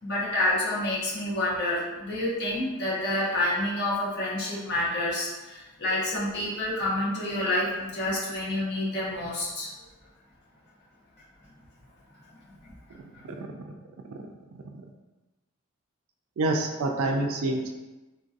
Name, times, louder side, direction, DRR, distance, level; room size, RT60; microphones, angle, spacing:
voice 1, 0.0-9.9 12.5-12.7 13.1-13.2, left 1 dB, 50° left, -7 dB, 0.9 m, -28 dB
voice 2, 16.4-17.7, right 2 dB, 65° right, 3 dB, 0.3 m, -26 dB
3.7 x 2.6 x 2.4 m, 1.1 s
head